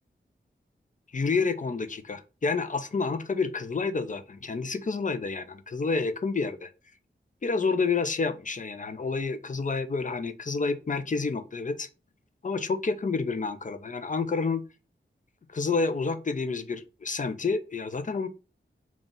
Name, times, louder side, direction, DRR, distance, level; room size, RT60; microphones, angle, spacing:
voice 1, 1.1-6.7 7.4-11.9 12.4-14.6 15.5-18.3, left 4 dB, 40° left, 10 dB, 0.5 m, -29 dB
3.9 x 2.4 x 3.6 m, 0.31 s
wide cardioid pair, 85°, 20 cm